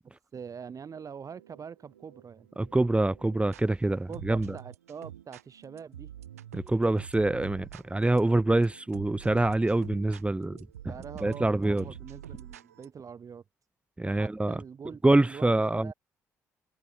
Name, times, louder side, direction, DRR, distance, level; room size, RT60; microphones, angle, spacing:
voice 1, 0.0-2.5 4.1-6.1 10.9-13.4 14.0-15.9, right 6 dB, 45° right, 7.8 m, -44 dB
sound 1, 0.9-3.6 4.1-12.9, right 11 dB, 85° right, 4.2 m, -48 dB
voice 2, 2.6-4.6 6.5-10.6 11.2-11.8 14.0-14.5 15.0-15.9, right 2 dB, 15° right, 2.1 m, -25 dB
hypercardioid pair, 45°, 8 cm